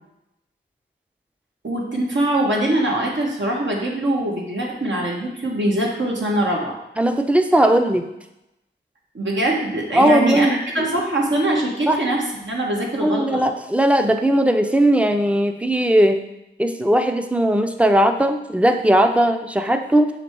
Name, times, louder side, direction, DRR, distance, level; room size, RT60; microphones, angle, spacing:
voice 1, 1.6-6.7 7.6-7.7 9.1-13.4, right 1 dB, 70° right, -2 dB, 1.4 m, -22 dB
voice 2, 7.0-8.0 9.9-10.9 11.9-12.0 13.0-16.2 16.6-20.1, right 1 dB, 5° right, 6 dB, 0.6 m, -18 dB
6.6 x 3.4 x 4.6 m, 0.89 s
wide cardioid pair, 50°, 20 cm